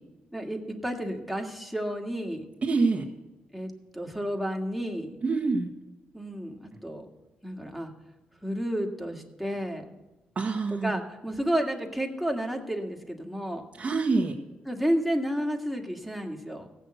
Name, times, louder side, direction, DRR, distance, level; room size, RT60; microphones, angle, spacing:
voice 1, 0.3-2.4 3.5-5.1 6.1-7.1 7.4-7.9 8.4-9.8 10.8-13.7 14.7-16.7, equal, ahead, 2 dB, 2.0 m, -31 dB
voice 2, 2.6-3.1 5.2-5.7 10.3-11.0 13.8-14.4, right 4 dB, 40° right, -1 dB, 1.4 m, -26 dB
16.0 x 6.4 x 7.9 m, 1.1 s
cardioid pair, 80°, 4 cm